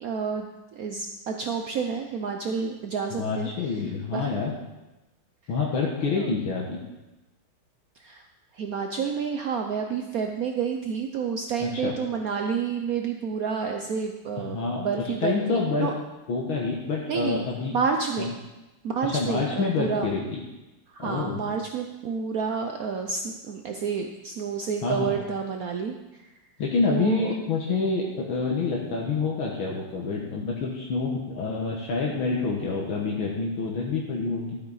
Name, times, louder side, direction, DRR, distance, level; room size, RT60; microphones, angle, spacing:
voice 1, 0.0-3.8 4.1-4.3 6.2-6.4 8.0-8.2 8.5-15.9 17.1-17.4 17.7-18.3 18.8-20.1 20.9-26.3 26.9-27.3, right 6 dB, 85° right, 4 dB, 0.7 m, -29 dB
voice 2, 3.2-4.5 5.5-6.8 11.6-11.9 14.4-14.8 15.2-15.9 16.3-17.8 18.2-18.3 19.0-20.4 21.0-21.4 24.8-25.2 26.6-34.6, left 4 dB, 70° left, -3 dB, 2.0 m, -27 dB
12.0 x 8.8 x 4.0 m, 1.0 s
omnidirectional pair, 2.4 m